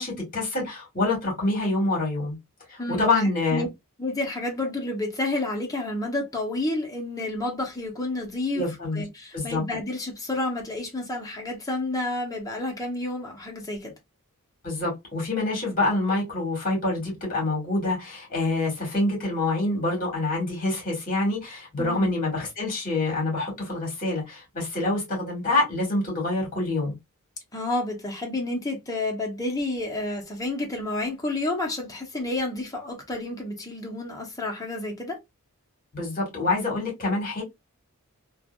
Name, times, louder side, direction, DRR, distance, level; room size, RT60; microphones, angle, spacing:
voice 1, 0.0-2.4 2.7-3.7 8.5-9.0 9.3-9.6 14.6-26.9 35.9-37.4, left 2 dB, 40° left, 1.8 m, -26 dB
voice 2, 2.8-3.2 3.5-3.7 4.0-8.6 8.9-13.9 21.8-22.1 27.5-35.2, left 2 dB, 15° left, 0.8 m, -30 dB
3.2 x 2.5 x 2.2 m
head